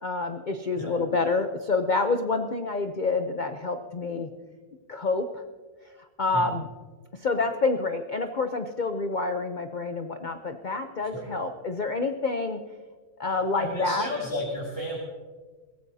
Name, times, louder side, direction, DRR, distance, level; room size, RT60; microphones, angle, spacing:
voice 1, 0.0-4.3 4.9-5.4 6.2-6.7 7.2-12.6 13.2-14.1, left 3 dB, 45° left, 6 dB, 0.6 m, -28 dB
voice 2, 13.6-15.0, left 1 dB, 15° left, -4 dB, 2.3 m, -32 dB
22.0 x 17.0 x 2.8 m, 1.4 s
omnidirectional pair, 1.7 m